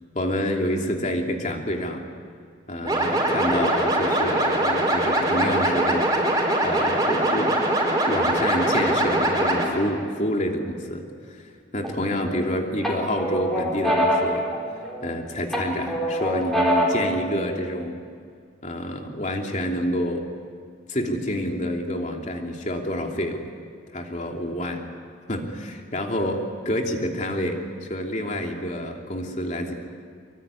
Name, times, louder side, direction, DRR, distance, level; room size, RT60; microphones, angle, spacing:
voice 1, 0.1-2.0 2.7-6.1 6.6-11.0 11.3-14.4 15.0-18.0 18.6-20.2 20.9-23.4 23.9-24.8 25.3-26.4 26.6-29.7, equal, 35° left, 2 dB, 2.9 m, -28 dB
sound 1, 2.8-9.7, right 1 dB, 20° right, 5.1 m, -22 dB
sound 2, 11.8-12.4 12.8-15.1 15.5-17.1, equal, ahead, 4.5 m, -24 dB
25.5 x 23.5 x 9.7 m, 2.1 s
head